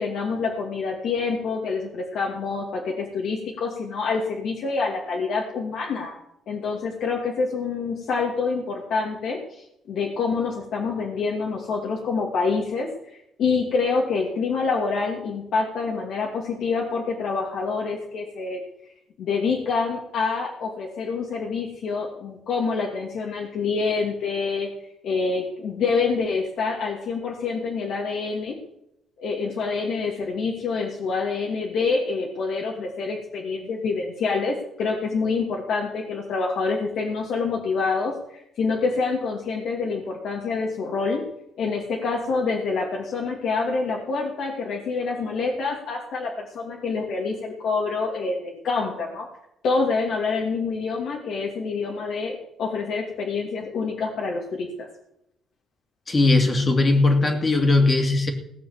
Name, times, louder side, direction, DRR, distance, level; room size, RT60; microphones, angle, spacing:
voice 1, 0.0-6.2 6.5-12.9 13.4-18.6 19.2-24.7 25.0-28.6 29.2-41.2 41.6-49.3 49.6-54.9, left 4 dB, 75° left, -1 dB, 2.4 m, -26 dB
voice 2, 56.1-58.3, left 2 dB, 35° left, 4 dB, 2.6 m, -19 dB
17.5 x 7.2 x 7.3 m, 0.81 s
cardioid pair, 90°, 0 cm